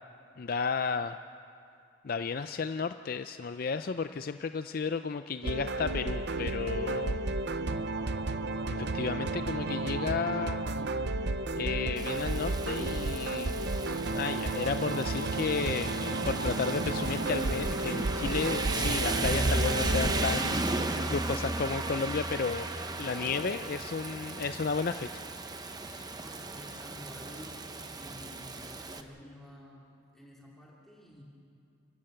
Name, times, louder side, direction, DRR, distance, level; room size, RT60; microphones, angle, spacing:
voice 1, 0.4-1.2 2.0-7.2 8.7-10.7 11.6-13.6 14.2-22.7 23.0-25.1 25.9-26.1, left 5 dB, 50° left, 10 dB, 0.4 m, -33 dB
sound 1, 5.4-20.3, right 2 dB, 55° right, 0.7 m, -32 dB
Rain, 12.0-29.0, right 2 dB, 20° right, 0.9 m, -35 dB
voice 2, 26.1-29.9 30.1-31.2, equal, ahead, -4 dB, 2.8 m, -50 dB
29.5 x 13.5 x 7.9 m, 2.5 s
head